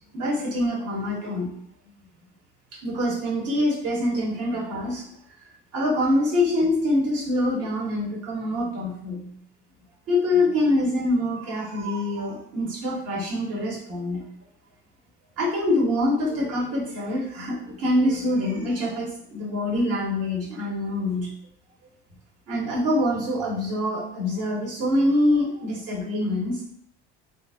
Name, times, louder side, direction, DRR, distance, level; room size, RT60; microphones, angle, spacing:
voice 1, 0.1-1.5 2.7-5.0 5.7-9.3 10.1-14.2 15.4-21.3 22.5-26.6, left 1 dB, 55° right, -2 dB, 1.4 m, -25 dB
3.5 x 2.5 x 2.8 m, 0.68 s
supercardioid pair, 90°, 30 cm